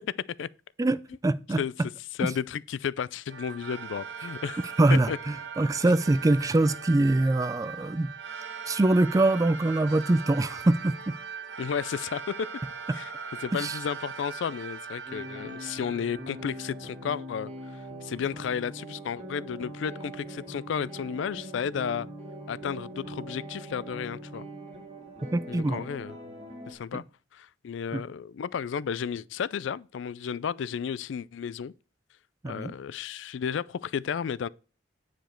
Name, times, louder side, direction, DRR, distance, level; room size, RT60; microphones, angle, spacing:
voice 1, 0.8-1.6 2.2-2.3 4.8-8.1 8.7-11.2 12.9-13.0 13.5-13.8 25.3-25.8 26.9-27.0 27.9-28.0 32.4-32.7, right 2 dB, 20° right, 0.3 m, -24 dB
voice 2, 2.2-5.2 11.6-12.3 12.9-13.1 13.4-22.1 22.5-24.5 25.5-26.2 26.7-27.0 27.3-31.7 32.5-34.5, left 7 dB, 80° left, 0.3 m, -33 dB
sound 1, 3.3-17.1, right 6 dB, 70° right, 1.2 m, -40 dB
sound 2, 15.1-26.7, right 1 dB, 35° right, 2.0 m, -42 dB
9.2 x 5.1 x 4.4 m
head